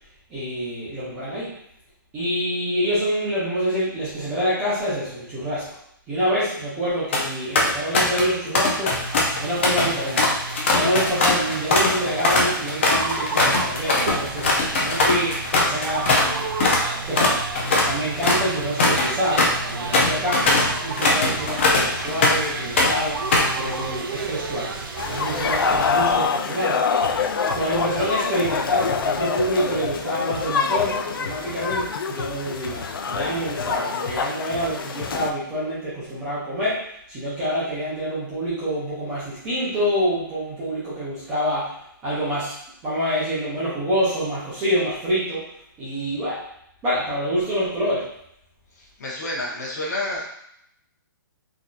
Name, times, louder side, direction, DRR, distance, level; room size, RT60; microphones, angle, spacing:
voice 1, 0.3-1.5 2.1-5.7 6.1-9.0 9.4-10.3 10.7-16.5 17.1-17.4 17.8-23.2 23.5-26.9 27.5-41.7 42.0-42.6 42.8-45.5 45.8-46.4 46.8-48.1, equal, 10° right, -10 dB, 0.6 m, -26 dB
sound 1, 6.9-7.3 7.6-8.3 8.5-16.3 16.6-16.8 17.1-22.5 22.8-23.6, left 2 dB, 35° left, 0.5 m, -21 dB
sound 2, 8.9-25.9, right 4 dB, 80° right, 0.6 m, -32 dB
sound 3, 25.0-35.3, left 5 dB, 85° left, 0.4 m, -25 dB
voice 2, 48.7-50.3, left 1 dB, 50° left, -3 dB, 1.0 m, -29 dB
3.8 x 2.7 x 2.4 m, 0.73 s
hypercardioid pair, 180°, 11 cm